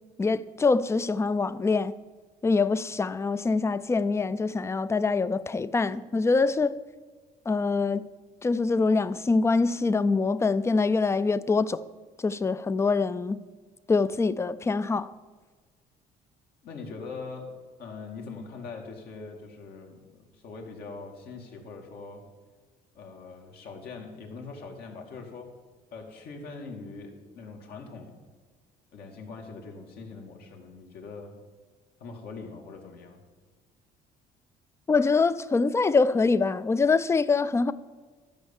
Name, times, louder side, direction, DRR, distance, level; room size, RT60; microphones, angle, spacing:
voice 1, 0.2-1.9 2.4-6.8 7.5-8.1 8.4-11.8 12.2-13.4 13.9-15.1 34.9-37.7, left 4 dB, 15° left, 0.4 m, -24 dB
voice 2, 16.6-22.2 23.0-25.5 25.9-28.2 28.9-31.3 32.0-33.2, left 4 dB, 65° left, 2.1 m, -42 dB
13.0 x 5.4 x 7.1 m
cardioid pair, 110°, 17 cm